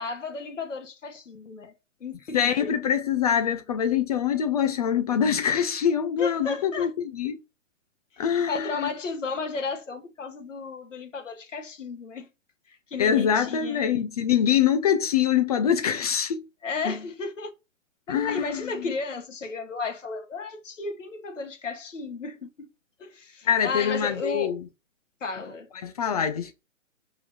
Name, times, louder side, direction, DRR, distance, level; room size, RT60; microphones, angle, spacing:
voice 1, 0.0-2.7 6.2-6.9 8.5-12.3 12.7-13.9 16.6-17.5 18.1-22.7 23.0-24.5 25.2-25.7, left 4 dB, 70° left, 2.1 m, -34 dB
voice 2, 2.3-7.4 8.2-8.9 13.0-16.4 16.9-17.0 18.1-18.9 23.4-24.6 25.7-26.5, left 8 dB, 30° left, 0.6 m, -24 dB
5.1 x 4.9 x 5.2 m
figure-of-eight pair, 130°, 39 cm